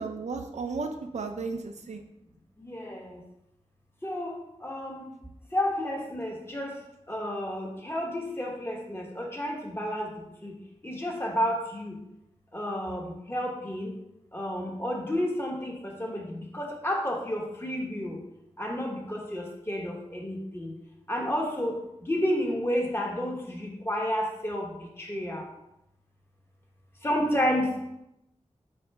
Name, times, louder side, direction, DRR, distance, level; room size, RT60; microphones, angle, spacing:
voice 1, 0.0-2.0, right 4 dB, 90° right, 6 dB, 0.4 m, -34 dB
voice 2, 2.6-3.2 4.0-4.3 4.6-5.1 5.5-6.8 7.1-10.6 10.8-12.0 12.5-13.9 14.3-18.2 18.6-20.7 21.1-21.7 22.0-25.4 27.0-27.7, equal, 20° left, 0 dB, 1.0 m, -31 dB
4.3 x 2.5 x 4.5 m, 0.86 s
wide cardioid pair, 60°, 11 cm